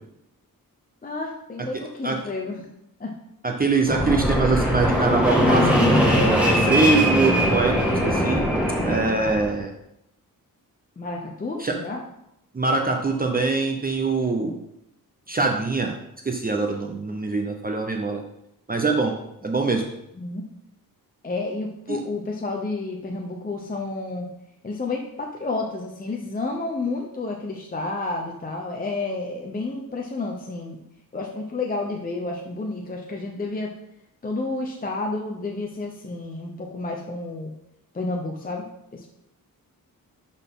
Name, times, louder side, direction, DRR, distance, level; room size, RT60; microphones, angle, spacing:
voice 1, 1.0-2.7 3.0-3.1 11.0-12.0 20.1-20.4 21.2-24.3 24.6-30.8 31.1-33.7 34.2-37.5 37.9-39.1, left 3 dB, 25° left, 1 dB, 0.7 m, -30 dB
voice 2, 3.4-8.4 8.8-9.7 11.6-11.7 12.5-14.6 15.3-15.9 16.2-18.2 18.7-19.1 19.4-19.9 21.9-22.0, right 3 dB, 25° right, 2 dB, 0.7 m, -23 dB
Fixed-wing aircraft airplane, 3.9-9.5, equal, 5° right, 1.6 m, -21 dB
11.5 x 4.1 x 3.7 m, 0.80 s
wide cardioid pair, 165°, 35 cm